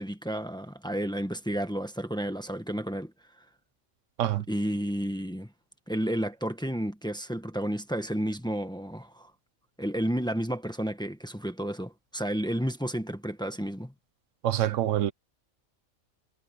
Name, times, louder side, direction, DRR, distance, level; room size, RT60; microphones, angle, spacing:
voice 1, 0.0-3.1 4.5-5.5 5.9-9.3 9.8-13.9, equal, 5° left, 1.3 m, -31 dB
voice 2, 14.4-15.1, right 12 dB, 80° right, 1.0 m, -26 dB
omnidirectional pair, 1.3 m